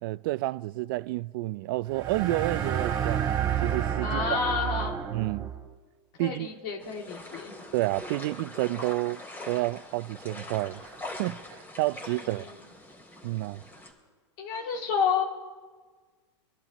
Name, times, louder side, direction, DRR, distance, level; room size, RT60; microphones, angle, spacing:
voice 1, 0.0-4.4 5.1-5.5 6.2-6.5 7.7-9.2 9.5-10.9 11.2-12.5 13.2-13.6, right 18 dB, 45° right, 0.4 m, -30 dB
sound 1, 1.9-5.7, right 9 dB, 25° right, 2.7 m, -30 dB
voice 2, 4.0-5.0 6.2-7.5 12.0-12.6 14.4-15.2, left 6 dB, 50° left, 2.6 m, -30 dB
sound 2, 6.8-13.9, left 2 dB, 15° left, 3.0 m, -43 dB
26.5 x 11.5 x 3.0 m
supercardioid pair, 150°, 16 cm